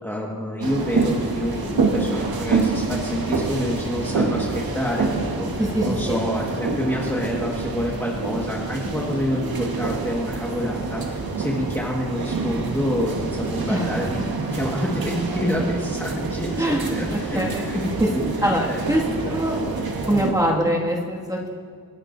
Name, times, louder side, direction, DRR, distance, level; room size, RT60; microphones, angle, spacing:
voice 1, 0.0-18.8 19.2-19.3 20.4-20.7, left 1 dB, 5° left, -4 dB, 1.7 m, -28 dB
sound 1, 0.6-20.3, right 4 dB, 75° right, 1.6 m, -27 dB
voice 2, 5.6-6.2 13.6-13.9 16.6-16.9 17.1-17.6 18.0-18.1 18.4-19.6 20.1-21.5, equal, 10° right, -3 dB, 2.1 m, -23 dB
27.5 x 9.7 x 2.7 m, 2.1 s
wide cardioid pair, 100°, 37 cm